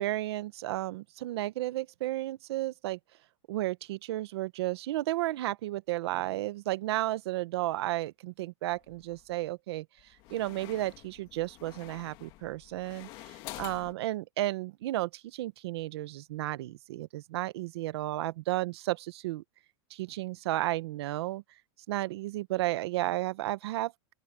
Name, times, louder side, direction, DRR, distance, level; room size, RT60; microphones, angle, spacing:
voice 1, 0.0-3.0 3.5-9.9 10.3-19.4 19.9-21.4 21.9-23.9, right 16 dB, 60° right, 1.0 m, -33 dB
sound 1, 8.7-9.3 10.0-13.9, left 18 dB, 30° left, 1.8 m, -48 dB
open air
supercardioid pair, 170°, 16 cm